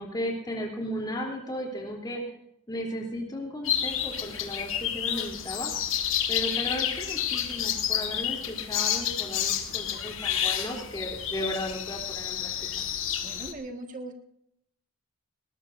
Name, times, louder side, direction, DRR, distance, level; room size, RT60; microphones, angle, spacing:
voice 1, 0.0-2.2 2.7-5.7 6.3-12.5, equal, 20° left, -1 dB, 3.5 m, -35 dB
sound 1, 3.6-13.5, left 9 dB, 80° left, 1.7 m, -30 dB
voice 2, 13.2-14.1, right 2 dB, 40° right, 3 dB, 1.9 m, -39 dB
20.5 x 19.0 x 2.7 m, 0.76 s
head